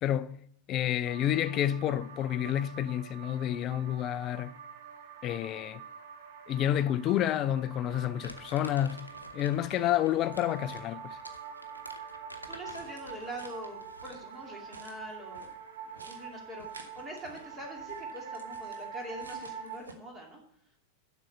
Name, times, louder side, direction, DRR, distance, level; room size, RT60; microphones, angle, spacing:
voice 1, 0.0-4.5 5.2-5.8 6.5-9.1 9.3-11.2, left 11 dB, 35° left, 0.4 m, -29 dB
sound 1, 1.0-19.8, right 7 dB, 55° right, 1.1 m, -45 dB
Crumpling crinkling, 8.2-14.3, equal, 90° left, 0.8 m, -49 dB
voice 2, 12.5-15.5 15.8-20.4, equal, 15° right, 2.5 m, -44 dB
sound 2, 12.7-19.9, right 3 dB, 75° right, 1.1 m, -54 dB
7.6 x 6.1 x 7.7 m
figure-of-eight pair, 90°, 0 cm